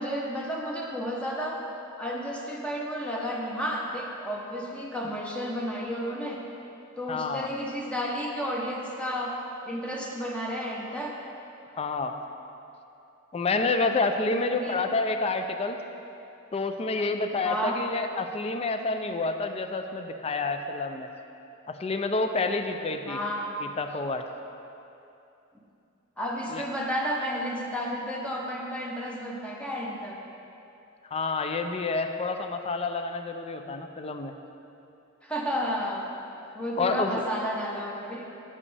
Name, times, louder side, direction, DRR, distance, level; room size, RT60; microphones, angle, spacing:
voice 1, 0.0-1.6 2.0-6.4 7.0-11.2 14.3-14.7 17.4-17.8 23.1-23.6 26.2-30.2 35.2-36.1 36.5-38.3, equal, 5° left, -3 dB, 0.7 m, -32 dB
voice 2, 7.1-7.5 11.7-12.2 13.3-15.8 16.5-21.1 21.7-23.2 23.6-24.2 26.5-26.6 31.0-34.3 36.8-37.2, left 3 dB, 30° left, 6 dB, 0.4 m, -28 dB
8.5 x 7.4 x 3.3 m, 2.8 s
head